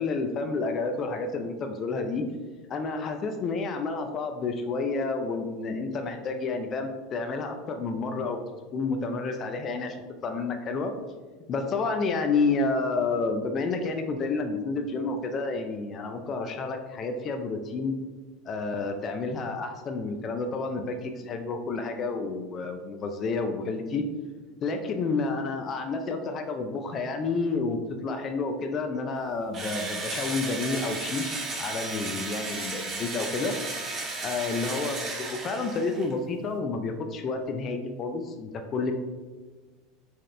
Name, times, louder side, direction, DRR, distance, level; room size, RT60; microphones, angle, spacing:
voice 1, 0.0-2.3 2.7-8.4 8.7-10.0 10.2-10.9 11.5-17.9 18.5-24.1 24.6-33.6 34.2-38.9, left 3 dB, 40° left, 5 dB, 0.4 m, -30 dB
Engine / Drill, 29.5-36.1, right 3 dB, 35° right, 1.0 m, -34 dB
4.2 x 2.4 x 3.2 m, 1.4 s
hypercardioid pair, 100°, 0 cm